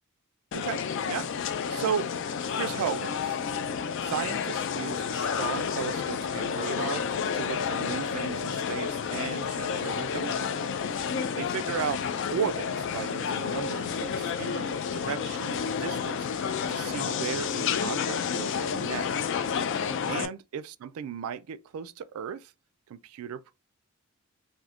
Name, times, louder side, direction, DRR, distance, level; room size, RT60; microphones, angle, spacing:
sound 1, 0.5-20.3, left 7 dB, 60° left, 0.3 m, -30 dB
voice 1, 0.5-2.1 2.5-3.4 4.0-10.4 11.4-12.0 12.3-19.3 20.1-22.5 22.9-23.5, right 7 dB, 70° right, 0.3 m, -35 dB
2.6 x 2.4 x 3.4 m
head